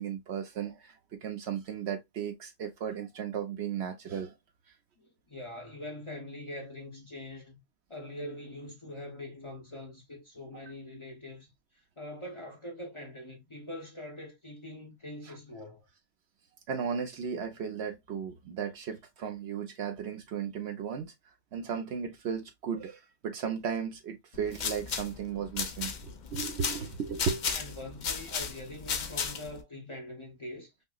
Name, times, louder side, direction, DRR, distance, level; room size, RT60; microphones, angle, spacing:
voice 1, 0.0-4.3 15.2-15.4 16.7-21.1 21.5-27.6, right 7 dB, 65° right, 0.9 m, -35 dB
voice 2, 5.0-7.6 7.9-11.5 12.0-15.8 27.5-30.7, left 1 dB, 30° left, 0.8 m, -43 dB
sound 1, 24.3-29.6, left 6 dB, 55° left, 0.5 m, -35 dB
5.4 x 2.0 x 2.3 m
omnidirectional pair, 1.3 m